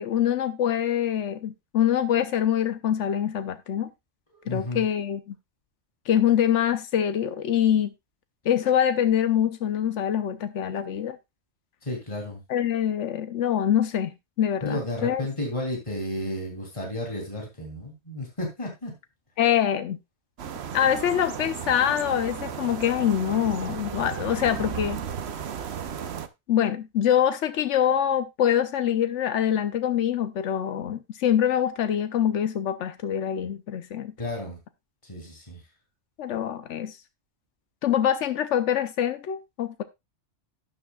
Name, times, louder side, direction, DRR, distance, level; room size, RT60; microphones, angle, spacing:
voice 1, 0.0-3.9 4.5-5.2 6.1-7.9 8.4-11.2 12.5-15.2 19.4-20.0 20.7-25.0 26.5-34.1 36.2-37.0 37.8-39.8, left 9 dB, 85° left, 1.1 m, -24 dB
voice 2, 4.3-4.9 11.8-12.4 14.6-18.9 34.2-34.6 35.0-35.6, left 1 dB, 25° left, 3.2 m, -32 dB
sound 1, 20.4-26.3, right 8 dB, 65° right, 1.0 m, -34 dB
12.5 x 9.6 x 2.3 m
omnidirectional pair, 1.2 m